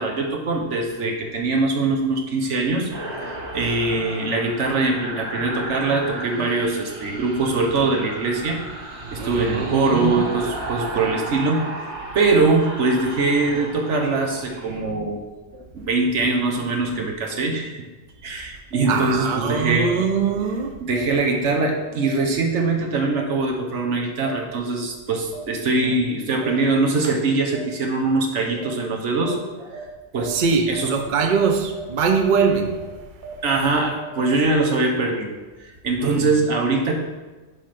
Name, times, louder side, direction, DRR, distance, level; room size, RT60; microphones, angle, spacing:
voice 1, 0.0-2.9 3.2-8.6 9.0-15.2 15.5-17.8 18.2-20.0 20.8-29.8 30.1-30.4 30.7-30.9 33.4-37.0, right 3 dB, 90° right, 2 dB, 1.4 m, -22 dB
sound 1, 2.9-14.8, right 2 dB, 75° right, 1.7 m, -34 dB
voice 2, 9.2-10.3 18.9-20.8 30.3-32.8 36.0-36.3 36.7-36.9, right 5 dB, 50° right, 5 dB, 0.8 m, -22 dB
sound 2, 18.7-18.8 19.8-19.9 20.9-21.0 22.0-22.1 23.1-23.2 24.2-24.3 25.3-25.4 26.4-26.5 27.5-27.6 28.6-28.7 29.2-29.3 29.7-29.8 30.2-30.3 30.7-30.8 31.2-31.3 31.7-31.8 32.2-32.3 32.7-32.8 33.2-34.3, right 6 dB, 5° right, 1.4 m, -36 dB
8.2 x 3.5 x 5.8 m, 1.2 s
omnidirectional pair, 1.2 m